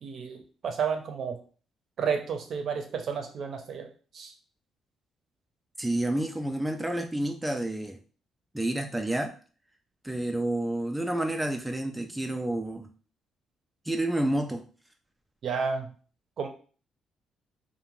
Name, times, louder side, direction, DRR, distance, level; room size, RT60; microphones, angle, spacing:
voice 1, 0.0-1.4 2.0-3.9 4.1-4.3 15.4-15.9 16.4-16.5, right 6 dB, 60° right, 4 dB, 0.6 m, -31 dB
voice 2, 5.8-8.0 8.5-9.4 10.0-12.9 13.9-14.7, right 1 dB, 5° right, 4 dB, 0.3 m, -29 dB
2.4 x 2.1 x 3.0 m, 0.39 s
cardioid pair, 90°, 0 cm